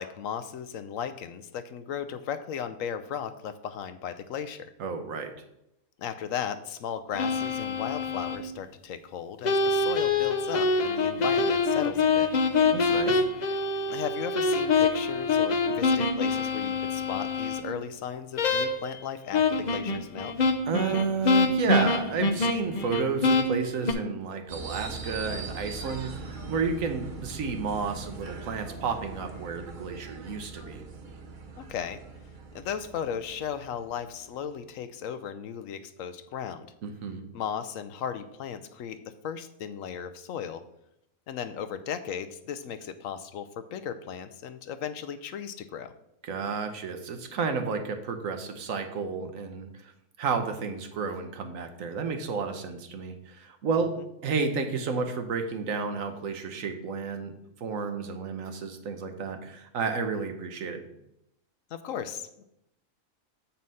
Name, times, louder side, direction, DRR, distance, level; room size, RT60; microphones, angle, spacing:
voice 1, 0.0-4.7 6.0-12.3 13.9-20.3 31.6-32.0 32.5-36.7 37.3-40.6 41.3-45.9 54.0-54.1 61.7-62.4, left 8 dB, 75° left, 10 dB, 0.9 m, -36 dB
voice 2, 4.8-5.3 12.7-13.3 20.6-30.8 36.8-37.2 46.2-49.9 50.2-53.9 54.2-57.3 57.6-60.8, right 5 dB, 70° right, 6 dB, 1.3 m, -31 dB
sound 1, 7.1-8.4 9.4-17.6 18.4-19.0 19.3-23.9, left 3 dB, 50° left, 0.5 m, -25 dB
sound 2, 24.5-34.4, right 4 dB, 40° right, 0.8 m, -41 dB
7.6 x 4.3 x 5.4 m, 0.82 s
omnidirectional pair, 1.5 m